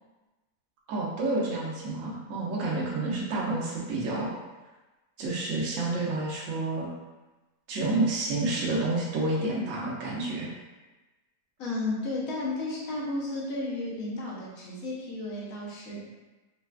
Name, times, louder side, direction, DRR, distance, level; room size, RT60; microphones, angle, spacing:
voice 1, 0.9-4.3 5.2-6.9 7.7-10.5, right 2 dB, 65° right, -5 dB, 1.0 m, -29 dB
voice 2, 11.6-16.0, left 2 dB, 65° left, -5 dB, 1.2 m, -33 dB
4.1 x 2.2 x 2.3 m, 1.1 s
omnidirectional pair, 1.6 m